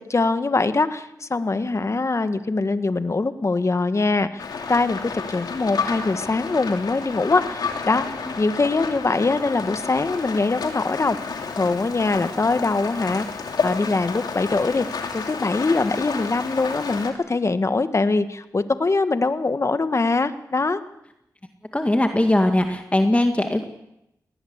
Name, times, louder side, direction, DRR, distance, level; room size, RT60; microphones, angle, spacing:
voice 1, 0.0-8.0 8.4-11.2 11.6-13.3 13.6-14.9 15.1-20.8, left 3 dB, 45° left, 10 dB, 1.6 m, -23 dB
Rain, 4.4-17.1, left 5 dB, 80° left, 2.9 m, -31 dB
voice 2, 21.7-23.6, left 1 dB, 20° left, 5 dB, 2.1 m, -20 dB
21.0 x 18.5 x 8.1 m, 0.83 s
cardioid pair, 50°, 7 cm